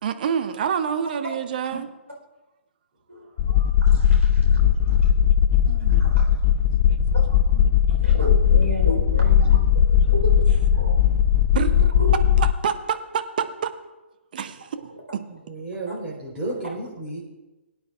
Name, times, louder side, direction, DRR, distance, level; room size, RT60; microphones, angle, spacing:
voice 1, 0.0-1.9 7.5-8.1 11.5-11.9 12.4-13.2 13.6-13.7 14.3-14.7, right 7 dB, 45° right, 8 dB, 0.8 m, -27 dB
voice 2, 3.1-5.1 5.6-6.5 7.1-7.6 8.0-11.0 11.9-12.2, right 1 dB, 90° right, -1 dB, 4.0 m, -33 dB
sound 1, 3.4-12.5, left 8 dB, 35° left, 0.5 m, -18 dB
voice 3, 15.3-17.2, right 2 dB, 15° right, -6 dB, 3.9 m, -32 dB
21.5 x 9.3 x 2.4 m, 1.1 s
figure-of-eight pair, 130°, 7 cm